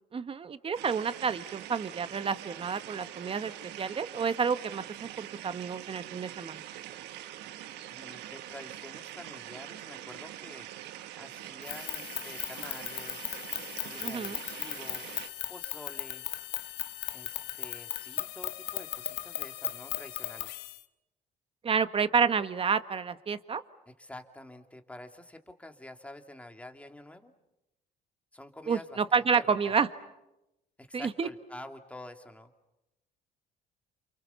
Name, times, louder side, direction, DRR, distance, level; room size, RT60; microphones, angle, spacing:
voice 1, 0.1-3.5 3.8-6.6 14.0-14.4 21.6-23.6 28.7-29.9 30.9-31.3, right 6 dB, 35° right, 11 dB, 1.5 m, -29 dB
sound 1, 0.7-15.3, right 13 dB, 85° right, 1.3 m, -44 dB
voice 2, 7.9-10.7 11.1-13.3 13.8-15.1 15.5-16.2 17.1-20.5 23.9-27.3 28.3-29.9 30.8-32.5, left 1 dB, 10° left, 5 dB, 2.6 m, -48 dB
sound 2, 11.6-20.8, left 16 dB, 90° left, 1.2 m, -37 dB
28.5 x 28.5 x 7.0 m, 0.92 s
cardioid pair, 110°, 17 cm